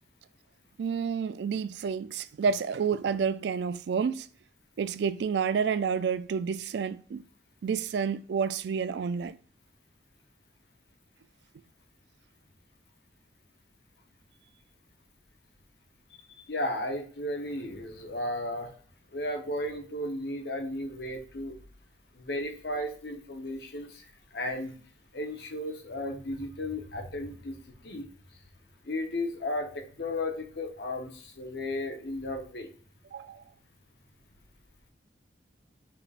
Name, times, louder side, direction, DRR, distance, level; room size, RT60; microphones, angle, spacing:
voice 1, 0.8-4.3 4.8-7.2 7.6-9.4 33.1-33.4, right 6 dB, 70° right, 0.3 m, -29 dB
voice 2, 16.1-18.7 19.1-21.6 22.1-24.0 24.3-24.7 25.1-27.6 27.8-28.1 28.8-32.7, left 1 dB, 70° left, 1.0 m, -34 dB
5.9 x 3.4 x 2.4 m
head